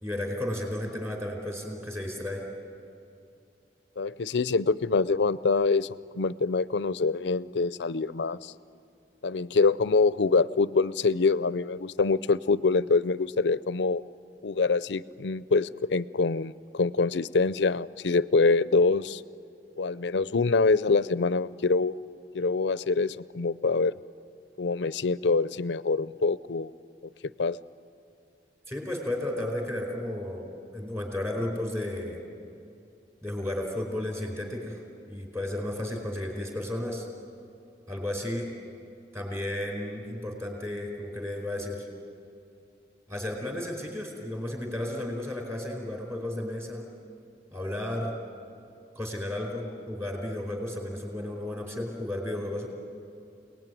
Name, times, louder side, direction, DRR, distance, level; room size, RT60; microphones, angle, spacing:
voice 1, 0.0-2.4 28.7-32.2 33.2-34.8 35.1-37.1 37.9-38.5 39.1-41.9 43.1-46.9 47.5-48.1 48.9-52.7, left 1 dB, 15° right, 1 dB, 4.5 m, -33 dB
voice 2, 4.0-8.5 9.2-14.0 14.4-19.2 19.8-22.0 22.3-23.9 24.6-26.7 27.4-27.6, left 4 dB, 80° left, 17 dB, 0.6 m, -25 dB
28.5 x 19.5 x 9.3 m, 2.5 s
head